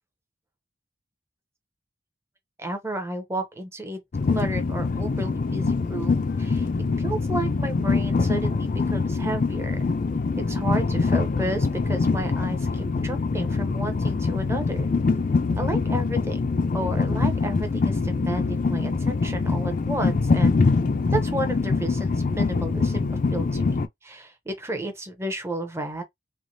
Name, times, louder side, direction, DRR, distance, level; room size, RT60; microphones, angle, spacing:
voice 1, 2.6-4.0 4.3-6.7 7.0-9.9 10.4-14.9 15.6-16.4 16.7-20.6 21.1-26.0, right 1 dB, 15° right, 0.7 m, -32 dB
Train, 4.1-23.9, left 4 dB, 45° left, 0.4 m, -24 dB
3.3 x 3.1 x 2.6 m
head